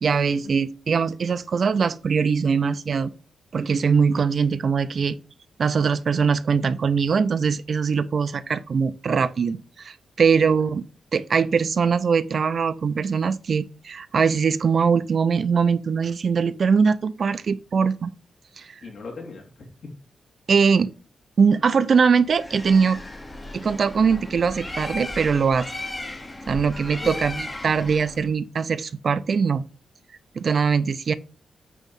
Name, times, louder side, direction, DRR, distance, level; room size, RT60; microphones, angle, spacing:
voice 1, 0.0-3.1 3.5-5.2 5.6-10.8 11.1-18.1 18.6-18.7 20.5-20.9 21.4-23.0 23.5-25.7 26.5-29.6 30.4-31.1, right 5 dB, 50° right, 0.5 m, -21 dB
voice 2, 18.8-19.9 26.5-27.3, left 3 dB, 65° left, 2.6 m, -40 dB
Bird, 22.3-28.3, left 2 dB, 20° left, 0.9 m, -36 dB
9.2 x 3.1 x 5.3 m
wide cardioid pair, 125°, 0 cm